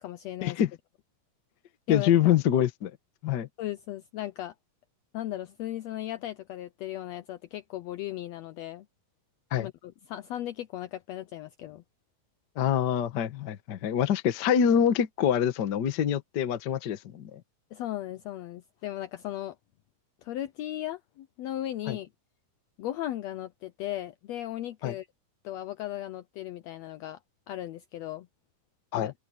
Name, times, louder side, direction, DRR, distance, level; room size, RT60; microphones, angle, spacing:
voice 1, 0.0-0.6 1.9-2.3 3.6-4.5 5.1-8.9 9.6-11.8 17.7-19.6 20.2-22.1 22.8-25.1 25.4-27.2 27.5-28.3 28.9-29.1, left 13 dB, 90° left, 1.5 m, -36 dB
voice 2, 1.9-2.9 3.2-3.5 9.5-9.7 12.6-17.4 21.9-22.0 24.8-24.9 28.9-29.1, left 9 dB, 70° left, 1.0 m, -25 dB
open air
omnidirectional pair, 3.8 m